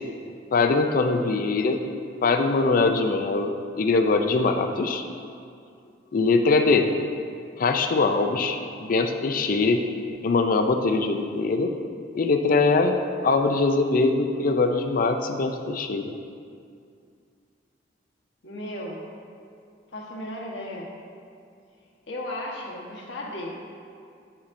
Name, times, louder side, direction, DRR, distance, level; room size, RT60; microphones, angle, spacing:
voice 1, 0.5-1.8 2.2-5.0 6.1-6.9 7.6-9.8 10.2-11.7 12.1-16.1, left 3 dB, 50° left, 6 dB, 0.4 m, -22 dB
voice 2, 18.4-19.0 19.9-20.9 22.1-23.6, left 1 dB, 75° left, -2 dB, 1.2 m, -35 dB
8.6 x 7.1 x 2.6 m, 2.4 s
head